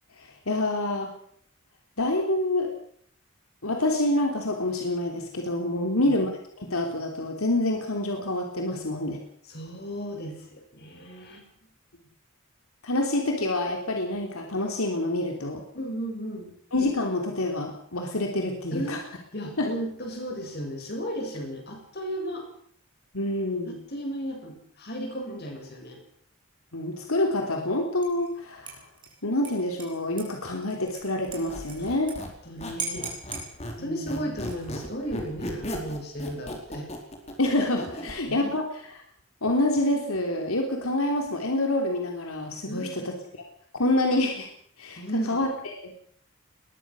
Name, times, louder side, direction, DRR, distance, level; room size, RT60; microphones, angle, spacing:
voice 1, 0.2-1.1 2.0-2.7 3.6-6.3 6.6-9.2 12.8-15.6 16.7-19.0 19.6-19.7 23.1-23.8 26.7-28.8 29.2-32.2 33.8-34.3 37.4-38.6 39.4-43.4 43.7-44.5 44.8-45.0 45.3-45.9, left 1 dB, 85° left, 2 dB, 3.4 m, -27 dB
voice 2, 5.8-6.1 8.7-8.8 9.5-11.5 15.7-16.5 18.7-19.0 19.3-22.5 23.6-26.0 31.8-31.9 32.4-33.1 33.8-36.9 37.9-38.5 42.7-43.1 45.0-45.4, equal, 45° left, 3 dB, 7.2 m, -35 dB
Dishes pots and pans / Liquid, 28.0-28.3 28.7-32.1 32.4-32.5 32.8-33.5 34.3-34.8, right 4 dB, 25° right, 5.9 m, -39 dB
Squeak, 31.3-33.8 34.1-38.2, equal, 30° left, 4.5 m, -36 dB
21.0 x 21.0 x 6.4 m, 0.63 s
head